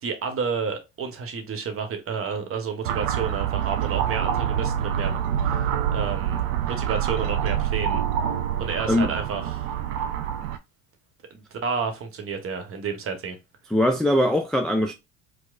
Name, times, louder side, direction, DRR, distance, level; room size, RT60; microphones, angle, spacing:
voice 1, 0.0-8.0 8.6-9.7 11.3-13.4, right 5 dB, 35° right, 1.0 m, -31 dB
sound 1, 2.8-10.6, right 9 dB, 75° right, 0.5 m, -26 dB
voice 2, 13.7-14.9, left 1 dB, ahead, 0.3 m, -21 dB
4.6 x 2.1 x 2.4 m
hypercardioid pair, 65°, 37 cm